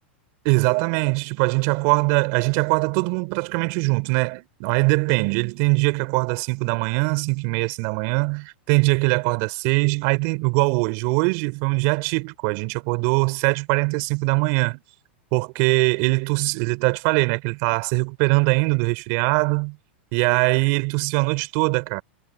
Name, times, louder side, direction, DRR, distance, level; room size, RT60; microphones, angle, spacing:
voice 1, 0.4-14.8 15.3-19.8 20.1-22.0, right 32 dB, 55° right, 4.2 m, -22 dB
hypercardioid pair, 110°, 6 cm